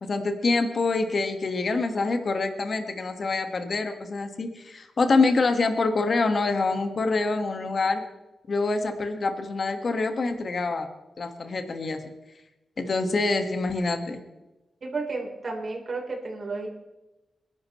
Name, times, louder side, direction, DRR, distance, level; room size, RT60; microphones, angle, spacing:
voice 1, 0.0-8.0 8.5-10.9 11.2-12.1 12.8-14.2, left 3 dB, 60° left, 6 dB, 1.7 m, -26 dB
voice 2, 14.8-16.7, right 3 dB, 60° right, 0 dB, 4.0 m, -32 dB
21.5 x 11.5 x 3.2 m, 1.0 s
supercardioid pair, 45°, 0 cm